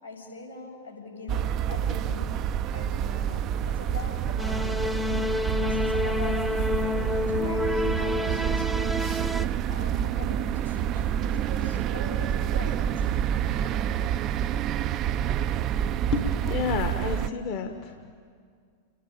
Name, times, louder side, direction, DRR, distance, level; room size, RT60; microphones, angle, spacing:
voice 1, 0.0-2.5 2.7-5.1 5.6-9.2 9.7-13.8, left 2 dB, 90° left, -5 dB, 6.1 m, -42 dB
sound 1, 1.3-17.3, right 10 dB, 35° right, 0.4 m, -28 dB
sound 2, 4.4-9.5, left 3 dB, 5° right, 0.8 m, -29 dB
voice 2, 16.5-17.9, left 6 dB, 45° left, 6 dB, 1.2 m, -29 dB
30.0 x 10.0 x 9.1 m, 2.1 s
figure-of-eight pair, 90°, 0 cm